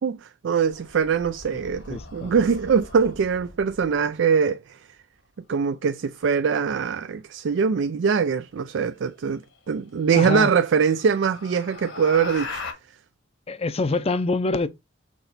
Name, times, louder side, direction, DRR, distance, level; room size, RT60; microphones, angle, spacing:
voice 1, 0.0-4.8 5.5-12.6, right 6 dB, 70° right, 0.4 m, -23 dB
sound 1, 0.6-4.0 6.4-6.8 8.9-9.0 9.5-9.6 10.1-12.7, left 3 dB, 70° left, 1.5 m, -40 dB
voice 2, 1.9-2.3 10.1-10.5 13.5-14.7, left 3 dB, 30° left, 0.5 m, -25 dB
6.1 x 3.9 x 4.0 m
head